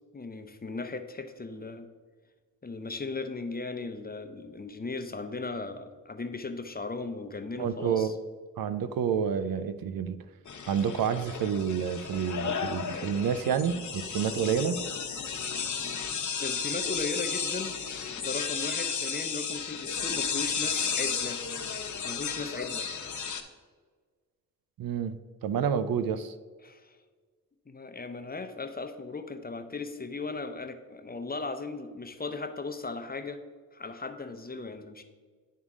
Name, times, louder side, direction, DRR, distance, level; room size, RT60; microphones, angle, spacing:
voice 1, 0.1-1.8 2.6-8.1 16.4-17.7 18.1-21.4 22.0-22.9 26.6-27.0 27.7-33.4 33.7-35.0, left 3 dB, 25° left, 7 dB, 0.8 m, -37 dB
voice 2, 7.6-8.1 8.6-10.2 10.7-14.8 24.8-25.2 25.4-26.3, right 7 dB, 70° right, 12 dB, 0.5 m, -29 dB
sound 1, 10.4-23.4, left 6 dB, 55° left, 0.9 m, -33 dB
11.0 x 3.6 x 3.6 m, 1.5 s
cardioid pair, 50°, 36 cm